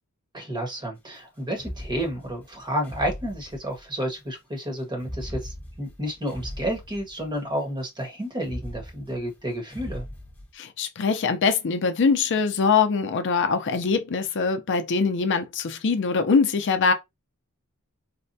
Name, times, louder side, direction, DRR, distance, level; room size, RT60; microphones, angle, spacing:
voice 1, 0.3-10.0, equal, 20° right, 1.1 m, -31 dB
sound 1, 1.5-4.1 4.9-7.5 8.4-10.5, equal, 10° left, 1.0 m, -39 dB
voice 2, 10.5-16.9, left 5 dB, 55° left, 0.5 m, -23 dB
4.2 x 2.1 x 2.6 m
head